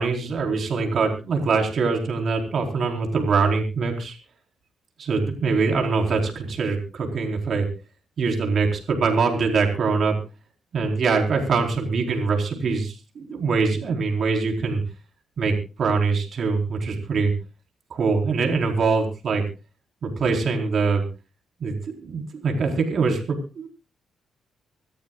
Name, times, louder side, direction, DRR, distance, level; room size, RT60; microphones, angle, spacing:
voice 1, 0.0-4.1 5.0-7.7 8.2-10.2 10.7-14.8 15.4-17.3 17.9-19.4 20.0-21.0 21.6-23.7, right 4 dB, 55° right, 2 dB, 4.4 m, -23 dB
26.0 x 13.5 x 2.4 m, 0.32 s
cardioid pair, 115°, 0 cm